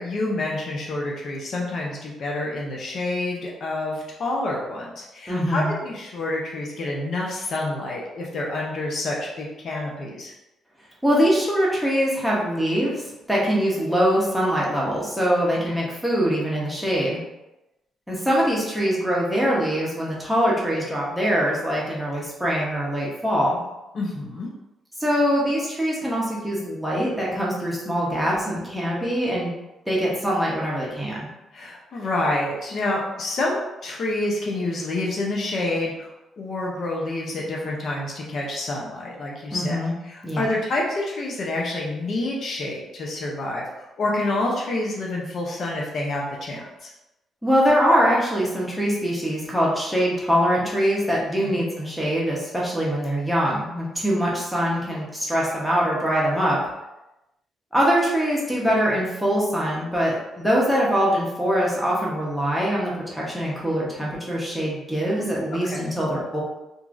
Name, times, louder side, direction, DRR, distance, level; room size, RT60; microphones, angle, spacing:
voice 1, 0.0-10.3 15.7-15.8 23.9-24.5 31.5-36.1 36.4-39.8 40.1-46.9 51.4-51.5 65.5-65.9, left 2 dB, 55° left, -2 dB, 0.5 m, -28 dB
voice 2, 5.3-5.7 11.0-17.2 18.1-23.6 25.0-29.5 29.9-31.3 39.5-39.9 40.2-40.4 47.4-56.6 57.7-66.4, equal, ahead, -5 dB, 0.9 m, -23 dB
2.8 x 2.5 x 2.5 m, 0.96 s
cardioid pair, 90°, 0 cm